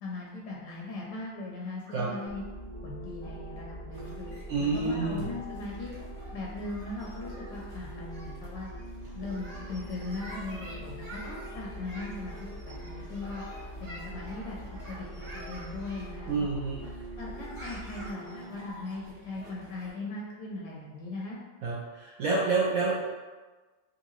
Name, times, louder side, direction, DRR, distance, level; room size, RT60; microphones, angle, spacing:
voice 1, 0.0-2.4 2.8-4.3 4.6-6.0 6.3-8.7 9.1-13.4 13.8-14.6 14.9-15.1 15.3-16.5 17.2-21.4, left 2 dB, 80° left, -3 dB, 1.3 m, -39 dB
sound 1, 1.9-18.7, right 1 dB, 50° right, 1.3 m, -48 dB
sound 2, 2.3-18.1, right 1 dB, 30° left, 0.5 m, -44 dB
sound 3, 3.9-19.9, equal, 35° right, 1.1 m, -48 dB
voice 2, 4.5-5.3 16.3-16.8 21.6-23.1, right 3 dB, 80° right, -5 dB, 0.7 m, -28 dB
3.7 x 2.5 x 3.0 m, 1.3 s
omnidirectional pair, 2.0 m